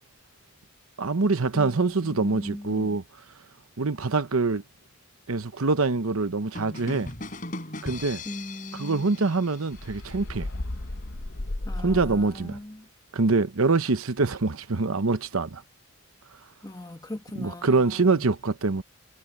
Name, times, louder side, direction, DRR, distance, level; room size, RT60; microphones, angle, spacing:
voice 1, 1.0-3.0 3.8-4.6 5.3-7.1 7.8-8.2 8.8-10.5 11.8-12.6 13.1-15.6 17.4-18.8, right 3 dB, 80° right, 0.9 m, -24 dB
voice 2, 1.5-3.0 8.2-9.3 11.7-12.9 16.6-18.3, left 1 dB, 20° left, 1.3 m, -40 dB
sound 1, 6.5-10.3, left 2 dB, 40° left, 4.9 m, -39 dB
sound 2, 9.7-12.5, left 1 dB, 55° left, 1.0 m, -34 dB
head